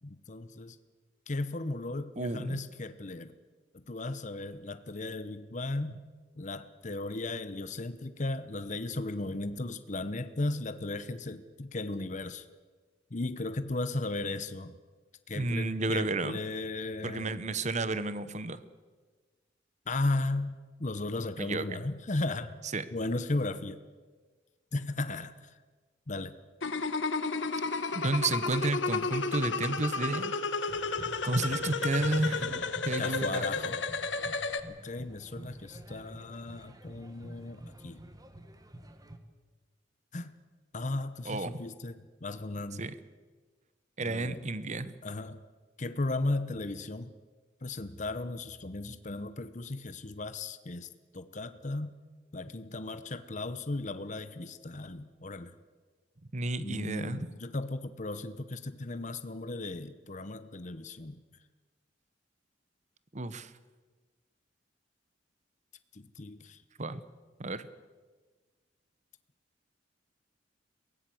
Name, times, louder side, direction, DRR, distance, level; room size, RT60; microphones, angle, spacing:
voice 1, 0.0-0.8 1.3-3.3 3.7-6.0 6.3-12.5 13.1-14.7 15.3-17.3 19.9-22.6 22.9-23.8 24.7-25.5 26.1-26.4 33.0-33.8 34.7-38.0 40.1-40.3 40.7-42.8 44.0-44.4 45.0-45.4 45.8-47.1 47.6-51.9 52.3-55.5 56.6-61.2 65.9-66.6, left 2 dB, 40° left, 11 dB, 0.9 m, -36 dB
voice 2, 2.2-2.6 15.3-16.4 17.0-18.6 21.4-21.8 22.7-22.8 27.9-30.3 31.2-33.7 41.2-41.6 42.8-42.9 44.0-44.9 56.3-57.3 63.1-63.5 66.8-67.0 67.4-67.7, right 2 dB, 40° right, 14 dB, 1.0 m, -32 dB
sound 1, 26.6-34.6, left 4 dB, 75° left, 1.4 m, -32 dB
sound 2, 30.7-39.2, right 1 dB, 20° right, 1.6 m, -48 dB
23.0 x 17.5 x 7.8 m, 1.4 s
head